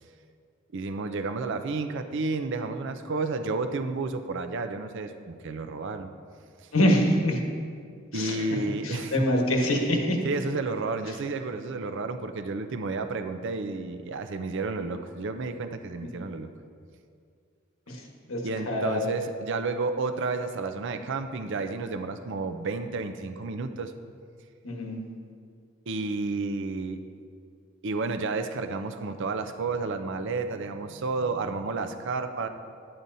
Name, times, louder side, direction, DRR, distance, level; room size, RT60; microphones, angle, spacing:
voice 1, 0.7-6.1 8.1-9.2 10.2-16.5 18.4-23.9 25.9-27.0 27.8-32.5, right 3 dB, 65° right, 8 dB, 0.5 m, -31 dB
voice 2, 6.7-7.4 8.1-8.4 8.8-10.2 17.9-18.0 18.3-19.1 24.6-25.0, left 1 dB, 90° left, 1 dB, 1.3 m, -25 dB
11.0 x 8.8 x 2.7 m, 2.2 s
head